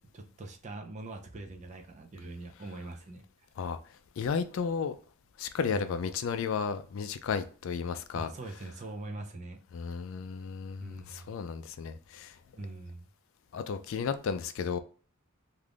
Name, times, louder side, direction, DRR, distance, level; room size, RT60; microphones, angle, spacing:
voice 1, 0.1-3.2 5.7-5.8 8.1-9.6 10.8-11.4 12.6-13.1, right 2 dB, 30° right, 0.4 m, -42 dB
voice 2, 4.2-5.0 5.4-8.3 9.7-12.4 13.5-14.8, left 6 dB, 60° left, 0.3 m, -33 dB
2.5 x 2.4 x 3.4 m
head